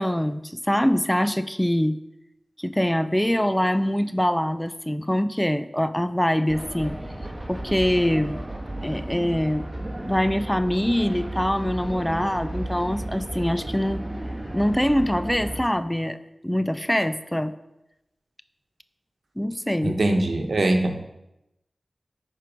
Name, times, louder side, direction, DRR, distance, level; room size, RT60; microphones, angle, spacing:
voice 1, 0.0-2.0 2.6-7.0 7.5-8.4 8.8-9.6 10.0-14.0 14.5-16.2 16.4-17.5 19.4-20.0, equal, 10° left, 12 dB, 0.5 m, -24 dB
sound 1, 6.5-15.6, right 1 dB, 25° right, 1.5 m, -34 dB
voice 2, 19.8-21.0, right 2 dB, 75° right, 4 dB, 1.0 m, -22 dB
11.0 x 4.6 x 4.9 m, 0.89 s
cardioid pair, 40°, 0 cm